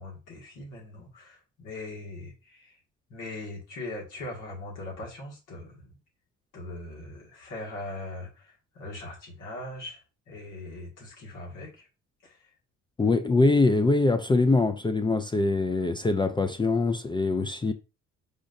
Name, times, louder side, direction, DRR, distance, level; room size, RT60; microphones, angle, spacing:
voice 1, 0.0-2.8 3.1-6.0 6.5-11.9 12.2-12.5, left 2 dB, 85° left, 2.0 m, -41 dB
voice 2, 13.0-17.7, left 3 dB, 15° left, 0.4 m, -23 dB
4.9 x 4.0 x 2.6 m
cardioid pair, 90°, 30 cm